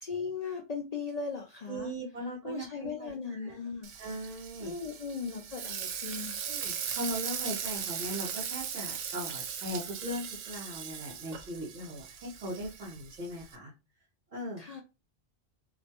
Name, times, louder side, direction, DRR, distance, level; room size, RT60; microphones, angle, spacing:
voice 1, 0.0-1.9 2.4-3.9 4.6-6.4 14.6-14.8, left 5 dB, 70° left, 2 dB, 0.3 m, -38 dB
voice 2, 1.7-3.6 4.0-4.7 6.4-13.7 14.3-14.6, equal, 45° right, -6 dB, 1.3 m, -39 dB
Frying (food), 3.8-13.6, right 8 dB, 85° right, 0.9 m, -39 dB
3.1 x 2.5 x 2.8 m, 0.27 s
omnidirectional pair, 1.2 m